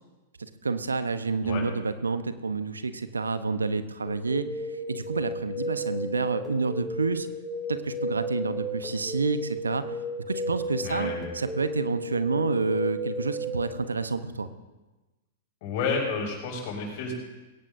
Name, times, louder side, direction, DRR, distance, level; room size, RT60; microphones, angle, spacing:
voice 1, 0.4-4.5 4.7-7.3 7.7-9.8 10.3-14.5, right 4 dB, 85° right, 11 dB, 1.0 m, -29 dB
sound 1, 4.1-13.6, equal, 5° right, 6.4 m, -34 dB
voice 2, 10.8-11.3 15.6-17.1, left 5 dB, 50° left, -1 dB, 6.5 m, -30 dB
21.5 x 18.0 x 2.7 m, 1.1 s
figure-of-eight pair, 105°, 0 cm